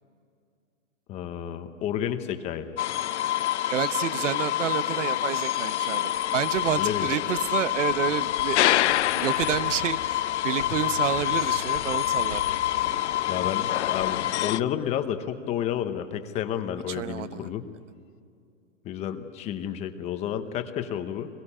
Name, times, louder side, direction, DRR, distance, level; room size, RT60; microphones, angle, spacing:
voice 1, 1.1-2.7 6.8-7.1 10.7-10.8 13.2-17.7 18.8-21.3, left 10 dB, 15° left, 8 dB, 1.0 m, -31 dB
sound 1, 2.8-14.6, left 13 dB, 60° left, 0.7 m, -26 dB
voice 2, 3.7-8.9 9.1-12.4 12.9-13.0 16.9-17.5, right 10 dB, 65° right, 15 dB, 1.0 m, -29 dB
sound 2, 6.1-14.9, left 5 dB, 85° left, 2.9 m, -45 dB
24.5 x 22.0 x 10.0 m, 2.3 s
hypercardioid pair, 160°, 39 cm